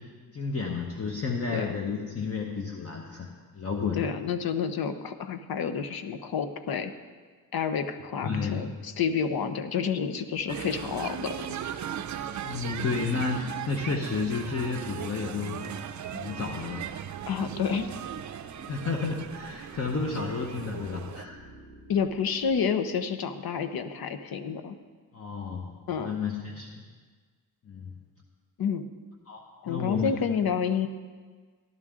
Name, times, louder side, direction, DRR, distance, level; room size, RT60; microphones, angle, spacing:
voice 1, 0.3-3.3 3.5-4.0 8.2-8.7 12.4-15.7 16.1-16.8 18.7-21.4 25.1-25.7 26.0-26.8 27.7-27.9 29.3-30.2, left 4 dB, 40° left, 1 dB, 1.0 m, -31 dB
voice 2, 3.9-6.9 7.5-11.6 17.3-17.9 21.9-24.8 25.9-26.2 28.6-28.9 29.6-30.9, left 7 dB, 70° left, 9 dB, 0.8 m, -29 dB
sound 1, 10.5-21.3, right 9 dB, 50° right, 0.5 m, -38 dB
sound 2, 16.7-22.6, equal, 85° left, 3.1 m, -51 dB
13.0 x 12.0 x 3.7 m, 1.5 s
wide cardioid pair, 120°, 38 cm